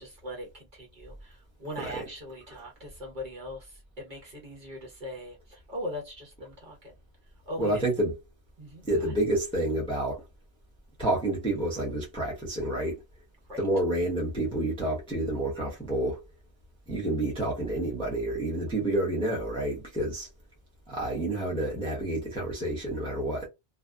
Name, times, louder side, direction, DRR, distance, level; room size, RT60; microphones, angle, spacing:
voice 1, 0.0-6.9 7.4-7.8 8.6-9.2 13.5-13.6, left 1 dB, 45° right, 1.0 m, -40 dB
voice 2, 7.6-8.1 8.8-10.2 11.0-13.0 13.6-16.2 16.9-20.3 20.9-23.5, right 1 dB, 5° left, 0.7 m, -29 dB
2.5 x 2.4 x 2.2 m
omnidirectional pair, 1.2 m